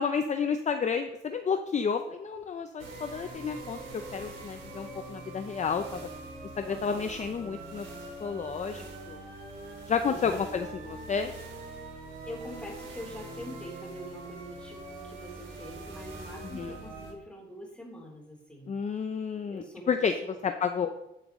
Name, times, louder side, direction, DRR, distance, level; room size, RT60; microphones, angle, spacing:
voice 1, 0.0-6.1 6.6-7.8 8.2-9.2 9.9-11.3 16.5-16.7 18.7-20.1 20.4-20.9, left 6 dB, 35° left, 7 dB, 0.6 m, -31 dB
sound 1, 2.8-17.1, right 2 dB, 75° right, 2.8 m, -43 dB
voice 2, 6.7-7.2 10.1-10.5 11.7-18.8 19.5-20.4, equal, 5° left, -2 dB, 3.8 m, -45 dB
10.5 x 9.1 x 3.2 m, 0.89 s
cardioid pair, 90°, 20 cm